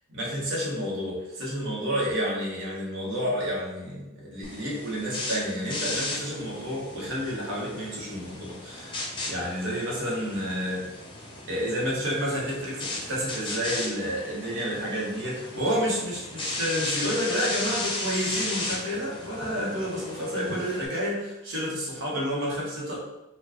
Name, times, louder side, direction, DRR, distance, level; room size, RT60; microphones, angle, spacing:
voice 1, 0.1-10.9 11.5-23.0, equal, 60° right, -5 dB, 1.2 m, -30 dB
sound 1, 4.4-20.9, left 2 dB, 25° left, 0.6 m, -36 dB
4.4 x 2.3 x 3.0 m, 0.97 s
head